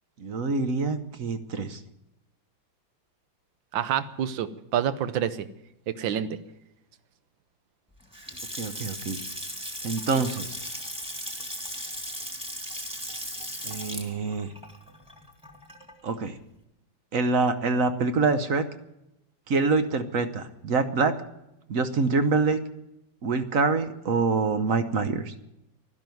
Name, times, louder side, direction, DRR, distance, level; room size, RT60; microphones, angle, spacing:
voice 1, 0.2-1.8 8.6-9.2 9.8-10.6 13.6-14.5 16.0-16.4 17.1-18.6 19.5-21.1 21.7-22.6 23.2-25.3, right 4 dB, 50° right, 10 dB, 1.2 m, -25 dB
voice 2, 3.7-5.5 5.9-6.4, right 9 dB, 80° right, 13 dB, 1.6 m, -28 dB
Water tap faucet / Sink (filling or washing) / Splash splatter, 8.0-16.1, equal, 5° right, 1.8 m, -37 dB
12.5 x 11.5 x 9.2 m, 0.87 s
omnidirectional pair, 2.1 m